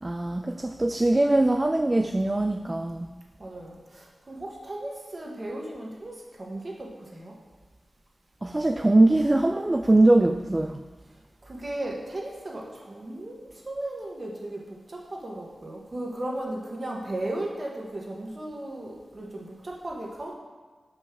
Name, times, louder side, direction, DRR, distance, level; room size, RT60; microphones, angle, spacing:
voice 1, 0.0-3.1 8.4-10.8, right 2 dB, 25° right, 6 dB, 0.4 m, -22 dB
voice 2, 3.4-7.3 11.4-20.3, right 1 dB, 45° right, -2 dB, 1.7 m, -36 dB
5.6 x 5.3 x 6.1 m, 1.4 s
cardioid pair, 55°, 0 cm